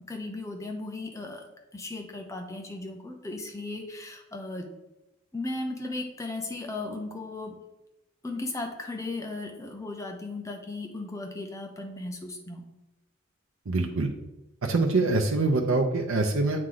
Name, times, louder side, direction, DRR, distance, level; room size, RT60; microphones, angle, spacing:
voice 1, 0.1-1.4 1.7-4.7 5.3-7.6 8.2-12.6, left 2 dB, 15° left, 2 dB, 0.7 m, -36 dB
voice 2, 13.7-14.1 14.6-16.6, right 3 dB, 85° right, 2 dB, 0.6 m, -24 dB
8.6 x 3.1 x 3.8 m, 0.97 s
head